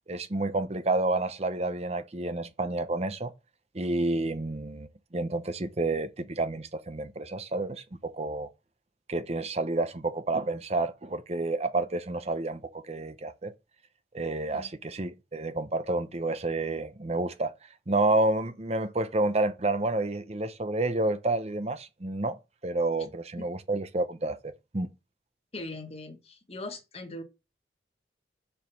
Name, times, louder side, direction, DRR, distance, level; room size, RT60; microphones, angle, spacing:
voice 1, 0.1-3.3 3.7-8.5 9.1-13.5 14.1-22.4 22.6-24.9, right 2 dB, 35° right, 0.8 m, -29 dB
voice 2, 25.5-27.2, left 2 dB, 35° left, 1.6 m, -40 dB
7.1 x 5.0 x 7.0 m
head